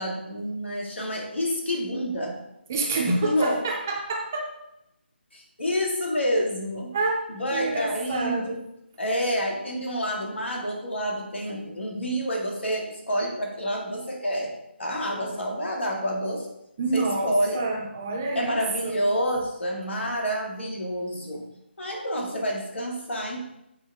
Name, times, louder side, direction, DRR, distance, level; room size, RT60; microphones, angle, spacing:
voice 1, 0.0-2.4 3.2-3.6 5.3-6.9 7.3-8.6 9.0-14.5 14.8-16.5 16.9-17.6 18.4-21.4 21.8-23.4, equal, 85° left, -1 dB, 2.1 m, -28 dB
voice 2, 2.7-4.4 6.9-7.2 7.5-8.6 15.0-15.4 16.8-19.0, right 3 dB, 15° right, 0 dB, 0.4 m, -28 dB
7.9 x 4.4 x 3.5 m, 0.83 s
hypercardioid pair, 175°, 6 cm